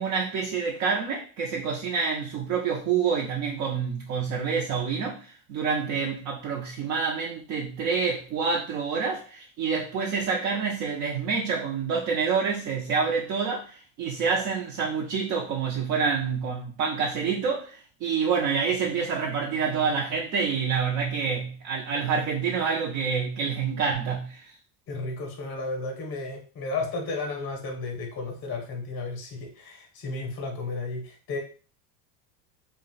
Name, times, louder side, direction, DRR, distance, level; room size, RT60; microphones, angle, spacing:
voice 1, 0.0-24.5, right 5 dB, 40° right, -1 dB, 0.4 m, -27 dB
voice 2, 24.9-31.4, left 3 dB, 30° left, 2 dB, 0.6 m, -33 dB
2.4 x 2.1 x 3.8 m, 0.38 s
cardioid pair, 145°, 43 cm